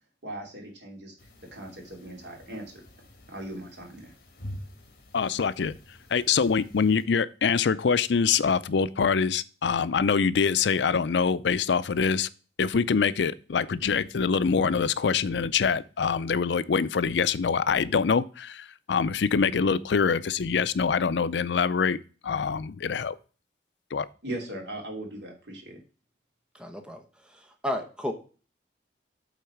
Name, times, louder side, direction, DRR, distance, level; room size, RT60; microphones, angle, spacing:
voice 1, 0.2-1.1 1.5-2.8 3.3-4.1 24.2-25.8, right 1 dB, 80° right, 3.0 m, -39 dB
sound 1, 1.2-7.1, equal, 60° left, 2.0 m, -47 dB
voice 2, 5.1-5.7 6.1-12.3 12.6-22.0 22.2-23.2 23.9-24.1, left 6 dB, 85° left, 0.5 m, -24 dB
voice 3, 26.5-27.0 27.6-28.1, left 1 dB, 5° right, 0.9 m, -31 dB
8.2 x 4.0 x 5.7 m
head